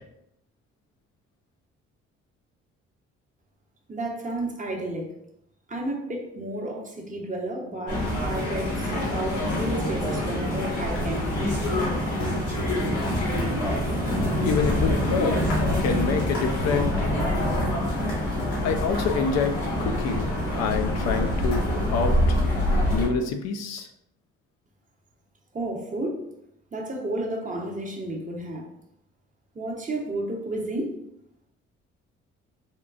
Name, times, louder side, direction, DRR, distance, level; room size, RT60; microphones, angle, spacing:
voice 1, 3.9-5.1 5.7-11.6 25.5-26.2 26.7-28.7 29.5-31.0, right 1 dB, 25° right, 0 dB, 0.8 m, -32 dB
sound 1, 7.9-23.1, left 1 dB, 85° left, 1.2 m, -25 dB
voice 2, 14.4-17.1 18.6-20.3 20.6-22.4 22.9-23.9, left 6 dB, 65° left, 6 dB, 0.4 m, -27 dB
3.6 x 2.3 x 2.4 m, 0.80 s
supercardioid pair, 55°, 29 cm